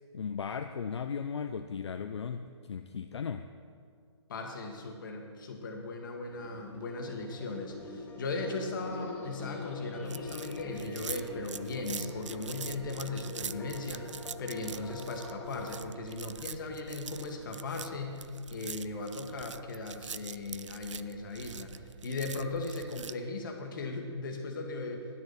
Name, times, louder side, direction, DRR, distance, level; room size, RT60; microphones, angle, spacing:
voice 1, 0.1-3.5, left 6 dB, 70° left, 7 dB, 0.5 m, -36 dB
voice 2, 4.3-25.1, left 3 dB, 45° left, 3 dB, 1.6 m, -38 dB
sound 1, 6.3-15.8, left 2 dB, 10° left, 0.7 m, -44 dB
sound 2, 10.0-23.1, right 7 dB, 85° right, 0.4 m, -44 dB
10.5 x 6.6 x 7.1 m, 2.2 s
hypercardioid pair, 150°, 15 cm